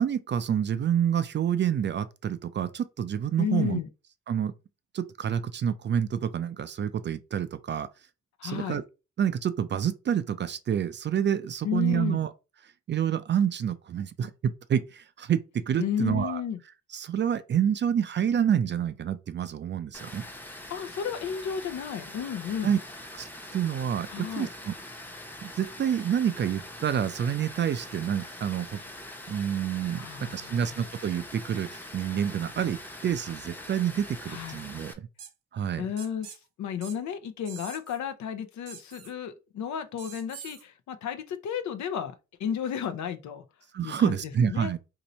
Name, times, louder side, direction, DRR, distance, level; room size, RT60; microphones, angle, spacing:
voice 1, 0.0-3.8 4.3-4.5 4.9-7.9 8.4-8.8 9.2-12.3 12.9-16.4 16.9-20.2 22.6-22.8 23.1-24.7 25.4-28.8 29.3-35.1 35.5-35.9 43.7-44.8, right 9 dB, 40° right, 0.4 m, -28 dB
voice 2, 3.4-3.9 8.4-8.8 11.6-12.2 15.8-16.6 20.7-22.7 24.1-24.5 30.0-30.8 34.3-34.6 35.8-42.1 42.4-43.4 43.8-44.7, left 8 dB, 70° left, 0.7 m, -33 dB
Water, 19.9-34.9, left 1 dB, 5° left, 0.8 m, -43 dB
sound 1, 35.2-35.3 36.0-36.4 36.8-37.0 37.4-38.0 38.7-39.1 40.0-40.6, right 8 dB, 55° right, 0.9 m, -44 dB
2.7 x 2.7 x 4.2 m
cardioid pair, 90°, 30 cm